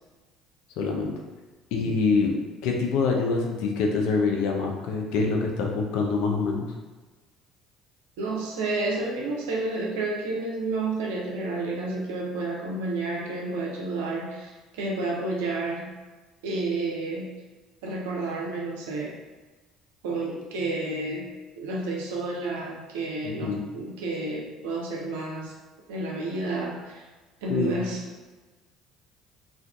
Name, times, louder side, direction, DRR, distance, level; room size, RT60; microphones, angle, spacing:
voice 1, 0.8-1.1 1.7-2.3 2.6-6.7 23.2-23.6 27.5-27.8, left 4 dB, 70° left, 1 dB, 0.4 m, -25 dB
voice 2, 8.2-15.9 16.4-17.3 17.8-19.2 20.0-25.5 25.9-27.1 27.4-28.0, right 2 dB, 80° right, -2 dB, 0.4 m, -30 dB
2.4 x 2.3 x 2.3 m, 1.3 s
hypercardioid pair, 65°, 0 cm